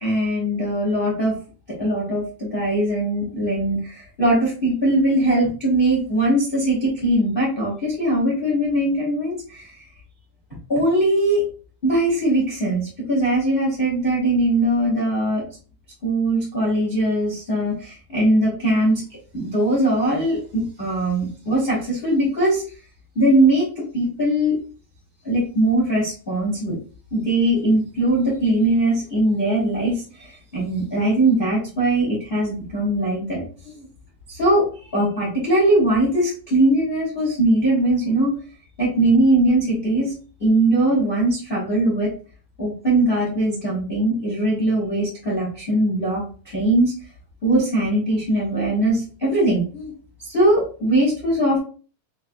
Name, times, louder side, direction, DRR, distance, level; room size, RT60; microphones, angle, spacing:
voice 1, 0.0-1.3 1.7-9.8 10.7-11.4 11.8-15.4 16.0-19.0 19.3-22.6 23.1-24.6 25.2-26.8 27.1-33.8 34.3-34.6 34.9-38.3 38.8-40.1 40.4-42.1 42.6-46.9 47.4-49.9 50.2-51.6, right 1 dB, 25° left, -5 dB, 1.2 m, -20 dB
6.6 x 3.2 x 2.4 m, 0.37 s
omnidirectional pair, 4.9 m